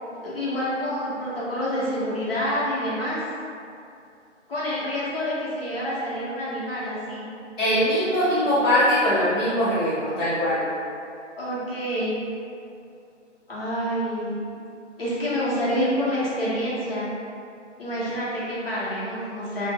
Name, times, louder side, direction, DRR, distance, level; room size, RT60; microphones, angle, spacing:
voice 1, 0.2-3.2 4.5-7.3 11.4-12.2 13.5-14.5 15.0-17.1 17.8-19.7, equal, 50° left, -9 dB, 0.8 m, -27 dB
voice 2, 7.6-10.6, equal, 5° left, -26 dB, 0.7 m, -21 dB
2.4 x 2.0 x 3.5 m, 2.4 s
hypercardioid pair, 165°, 37 cm